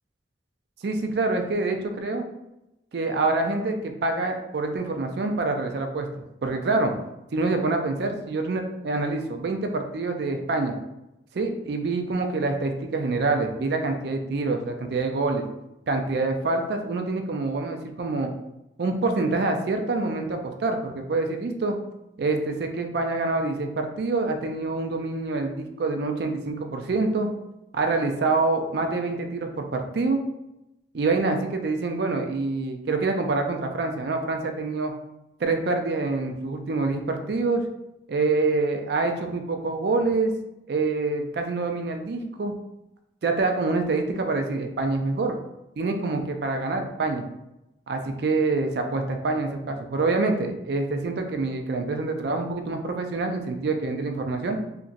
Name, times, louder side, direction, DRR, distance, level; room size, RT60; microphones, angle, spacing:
voice 1, 0.8-2.2 2.9-6.1 6.4-7.0 7.3-10.8 11.3-15.4 15.9-18.3 18.8-21.7 22.2-27.3 27.7-30.2 30.9-34.9 35.4-37.6 38.1-40.3 40.7-42.5 43.2-45.4 45.8-47.2 47.9-54.6, right 3 dB, 55° right, 5 dB, 0.4 m, -26 dB
2.9 x 2.5 x 2.5 m, 0.91 s
head